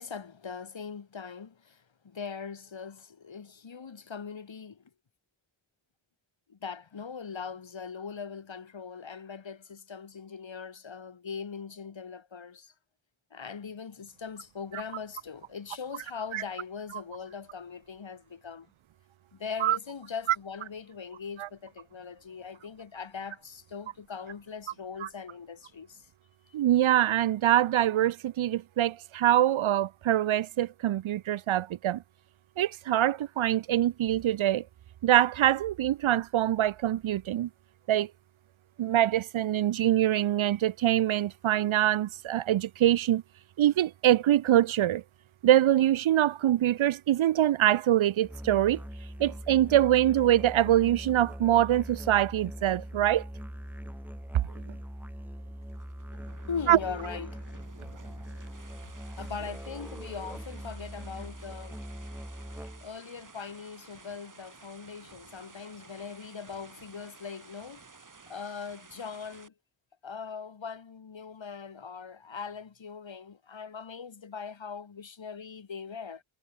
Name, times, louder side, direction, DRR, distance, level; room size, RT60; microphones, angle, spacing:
voice 1, 0.0-4.8 6.5-12.7 13.3-18.7 19.3-26.1 26.5-26.6 56.5-57.5 59.2-61.8 62.8-67.8 68.3-69.5 70.0-76.2, left 6 dB, 65° left, 7.1 m, -40 dB
voice 2, 26.5-32.0 32.6-34.6 35.0-37.5 37.9-38.1 38.8-43.2 43.6-45.0 45.4-48.8 49.2-53.3 56.7-56.8, right 12 dB, 75° right, 0.6 m, -24 dB
Musical instrument, 48.2-63.0, equal, 5° right, 1.9 m, -42 dB
sound 1, 55.6-69.5, right 4 dB, 40° right, 5.8 m, -53 dB
wide cardioid pair, 145°, 49 cm